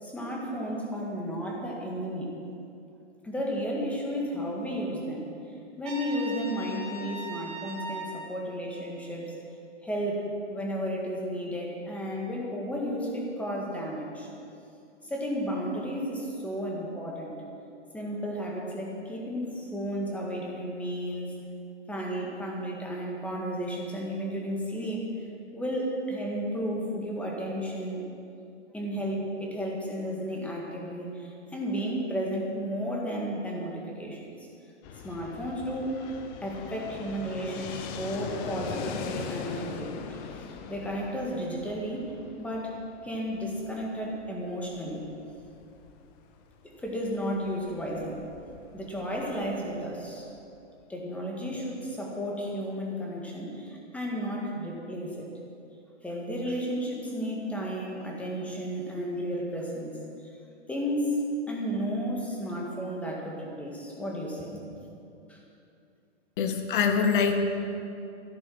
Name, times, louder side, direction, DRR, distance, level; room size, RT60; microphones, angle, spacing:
voice 1, 0.0-2.4 3.2-5.3 5.8-9.3 9.8-14.3 15.0-17.4 17.9-21.4 21.9-25.1 25.5-28.0 28.7-34.5 35.0-36.0 36.4-42.1 42.4-45.1 46.6-48.3 48.7-50.3 50.9-55.3 56.0-60.0 60.2-60.3 60.7-61.2 61.5-64.6 65.3-65.4, equal, 5° left, -2 dB, 1.7 m, -33 dB
Trumpet, 5.8-8.2, right 1 dB, 35° right, 3.7 m, -39 dB
Fixed-wing aircraft airplane, 34.8-50.6, left 7 dB, 20° left, 0.6 m, -42 dB
voice 2, 66.4-67.4, left 6 dB, 45° left, 6 dB, 1.6 m, -24 dB
13.5 x 11.0 x 6.3 m, 2.6 s
hypercardioid pair, 150°, 35 cm